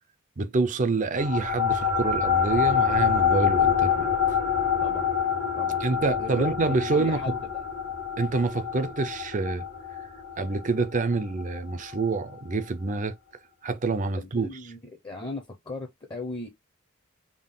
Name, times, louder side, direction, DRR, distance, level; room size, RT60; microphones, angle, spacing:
voice 1, 0.4-4.1 5.8-7.4 8.2-9.6 10.4-13.1 13.6-14.5, right 3 dB, 35° right, 0.5 m, -27 dB
sound 1, 1.2-12.0, left 7 dB, 65° left, 1.2 m, -26 dB
voice 2, 6.2-7.4 14.2-14.8 15.0-16.5, left 2 dB, 25° left, 0.8 m, -37 dB
3.7 x 2.4 x 3.7 m
head